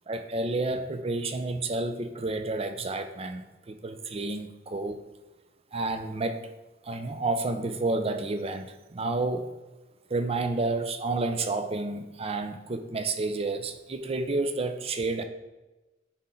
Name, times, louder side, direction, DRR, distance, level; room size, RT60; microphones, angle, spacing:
voice 1, 0.1-5.0 5.7-6.4 6.8-9.5 10.1-15.2, right 2 dB, 30° right, 9 dB, 0.5 m, -30 dB
9.9 x 4.3 x 3.8 m, 1.1 s
head